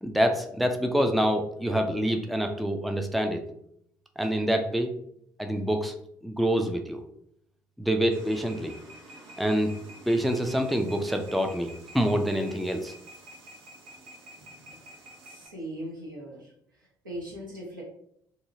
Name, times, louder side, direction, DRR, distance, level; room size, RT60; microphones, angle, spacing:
voice 1, 0.0-3.4 4.2-4.9 5.4-5.9 6.2-7.0 7.8-8.7 9.4-9.7 10.1-12.9, equal, ahead, 5 dB, 0.3 m, -26 dB
sound 1, 8.1-15.5, right 1 dB, 55° right, 0.8 m, -48 dB
voice 2, 15.2-16.5 17.0-17.8, right 1 dB, 85° right, -5 dB, 0.7 m, -39 dB
2.8 x 2.6 x 2.6 m, 0.71 s
figure-of-eight pair, 45°, 10 cm